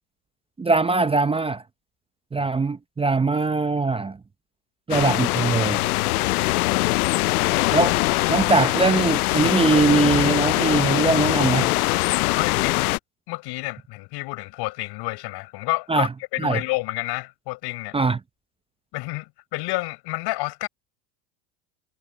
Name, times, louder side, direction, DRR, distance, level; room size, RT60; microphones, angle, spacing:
voice 1, 0.6-1.6 2.3-4.2 4.9-5.8 7.7-8.0 8.3-11.7 15.9-16.1 16.4-16.6 17.9-18.2, right 4 dB, 15° right, 0.7 m, -21 dB
sound 1, 4.9-13.0, left 20 dB, 80° left, 0.7 m, -22 dB
voice 2, 12.4-13.0 13.3-18.0 18.9-20.7, left 22 dB, 60° left, 5.8 m, -29 dB
hypercardioid pair, 90°, 44 cm